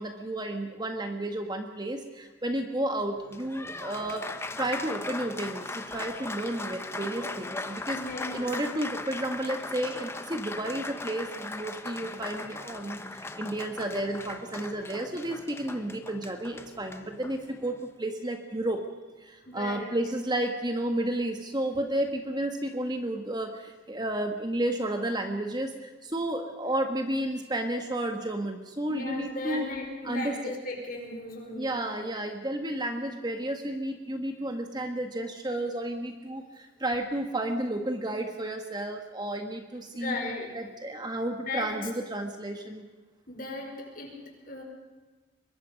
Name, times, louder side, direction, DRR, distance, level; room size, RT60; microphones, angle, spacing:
voice 1, 0.0-4.3 4.6-8.0 8.3-18.8 19.2-29.7 30.0-30.3 31.5-40.2 40.5-42.9, right 1 dB, 20° right, 5 dB, 1.6 m, -32 dB
Applause, 3.2-17.9, left 2 dB, 15° left, 1.1 m, -39 dB
voice 2, 8.0-8.5 19.5-19.9 28.9-31.8 39.9-40.6 41.4-41.9 43.3-44.6, left 2 dB, 45° left, 1 dB, 5.4 m, -37 dB
24.5 x 22.0 x 5.3 m, 1.3 s
head